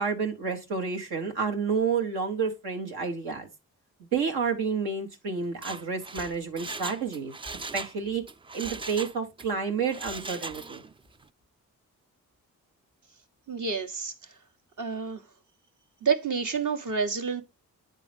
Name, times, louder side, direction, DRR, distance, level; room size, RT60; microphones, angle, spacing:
voice 1, 0.0-3.5 4.1-7.3 7.7-8.2 8.5-10.8, right 5 dB, 75° right, 1.5 m, -30 dB
Mechanisms, 5.5-8.0 8.3-9.5 9.9-10.9 11.2-11.3, right 3 dB, 15° right, 0.4 m, -39 dB
voice 2, 13.5-14.1 14.8-15.2 16.0-17.4, right 5 dB, 50° right, 1.3 m, -28 dB
9.0 x 3.8 x 3.4 m
supercardioid pair, 45°, 38 cm